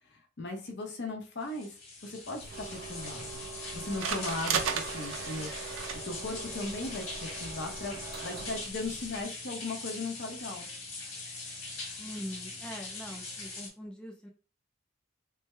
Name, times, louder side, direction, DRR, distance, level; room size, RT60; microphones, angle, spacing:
voice 1, 0.1-1.7 2.0-3.5 3.7-5.8 6.0-10.7, left 2 dB, 60° left, 3 dB, 0.8 m, -38 dB
sound 1, 1.4-13.7, left 3 dB, 75° left, 1.6 m, -42 dB
sound 2, 2.4-9.2, right 6 dB, 75° right, 0.5 m, -38 dB
sound 3, 2.5-8.6, right 5 dB, 50° right, 0.9 m, -45 dB
voice 2, 12.0-14.3, equal, 5° left, 2 dB, 0.3 m, -43 dB
3.4 x 2.1 x 3.2 m, 0.34 s
head